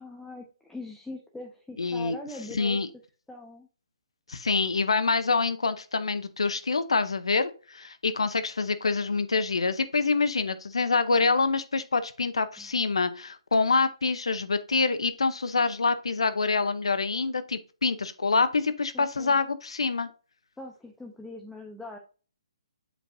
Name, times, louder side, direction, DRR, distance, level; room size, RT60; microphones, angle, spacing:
voice 1, 0.0-2.8 3.3-3.7 12.6-12.7 18.9-19.3 20.6-22.0, left 2 dB, 5° left, 1 dB, 0.8 m, -42 dB
voice 2, 1.8-2.2 2.5-2.9 4.3-20.1, left 4 dB, 80° left, 13 dB, 0.7 m, -26 dB
7.9 x 5.1 x 2.6 m, 0.37 s
hypercardioid pair, 140°, 3 cm